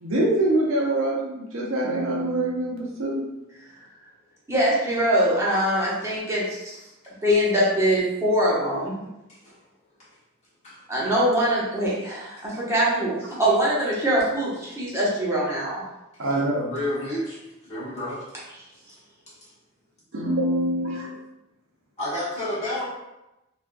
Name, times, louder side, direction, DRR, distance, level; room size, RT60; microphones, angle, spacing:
voice 1, 0.0-3.2 16.2-16.7 20.1-21.1, right 1 dB, 70° right, -2 dB, 0.7 m, -24 dB
voice 2, 4.5-6.4 7.2-9.1 10.9-15.8, equal, 15° right, -7 dB, 0.9 m, -23 dB
voice 3, 10.6-11.0 16.1-16.3 16.7-18.3 18.9-19.0 19.3-19.5 22.0-22.9, left 1 dB, 35° left, -9 dB, 1.3 m, -31 dB
3.4 x 2.4 x 2.5 m, 0.93 s
head